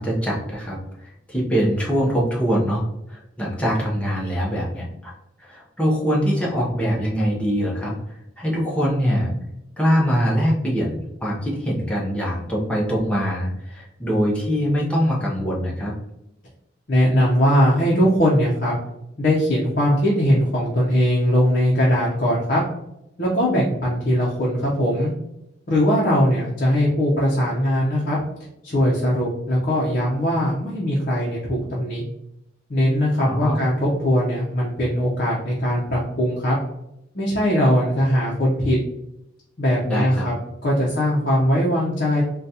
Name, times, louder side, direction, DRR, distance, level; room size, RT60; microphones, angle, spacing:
voice 1, 0.0-5.1 5.4-9.3 9.8-15.9 33.2-33.6 39.9-40.3, equal, 5° left, -5 dB, 0.7 m, -23 dB
voice 2, 16.9-18.8 19.2-22.6 23.2-25.1 25.7-28.2 28.6-32.0 32.7-36.6 37.1-38.8 39.6-40.3 40.6-42.2, equal, 50° left, -5 dB, 0.6 m, -20 dB
3.9 x 2.3 x 2.7 m, 0.86 s
head